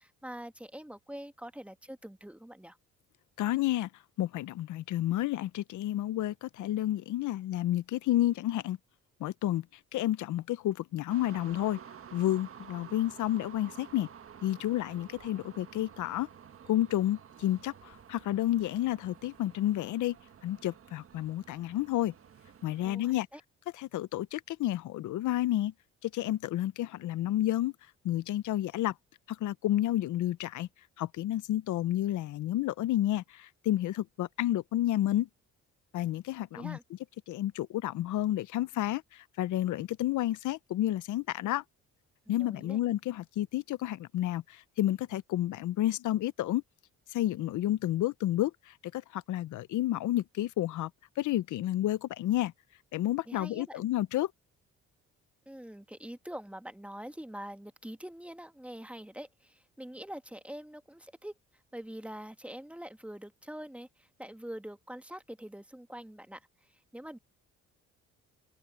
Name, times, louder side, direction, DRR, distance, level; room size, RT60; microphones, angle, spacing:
voice 1, 0.0-2.8 22.8-23.4 36.5-36.8 42.3-42.8 53.3-53.8 55.4-61.3 61.7-67.2, right 1 dB, 5° right, 1.4 m, -44 dB
voice 2, 3.4-3.9 4.2-8.8 9.2-9.7 9.9-11.8 12.1-14.1 14.4-16.3 16.7-20.2 20.4-22.1 22.6-23.3 23.8-25.7 26.0-27.7 28.0-28.9 29.3-30.7 31.0-35.3 35.9-36.8 37.3-41.6 42.3-46.6 47.1-50.9 51.2-52.5 52.9-54.3, left 14 dB, 75° left, 0.8 m, -30 dB
sound 1, 11.1-22.9, right 8 dB, 45° right, 1.5 m, -51 dB
open air
cardioid pair, 90°, 30 cm